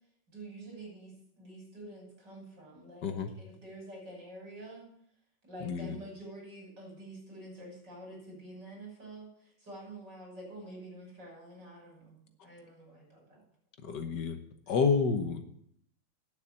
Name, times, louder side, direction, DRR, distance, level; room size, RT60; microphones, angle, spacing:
voice 1, 0.3-4.9 5.4-13.4, right 1 dB, 60° right, -1 dB, 6.6 m, -48 dB
voice 2, 5.6-6.0 13.8-14.4 14.7-15.4, left 5 dB, 60° left, 6 dB, 1.7 m, -29 dB
9.8 x 8.5 x 8.5 m, 0.68 s
omnidirectional pair, 2.2 m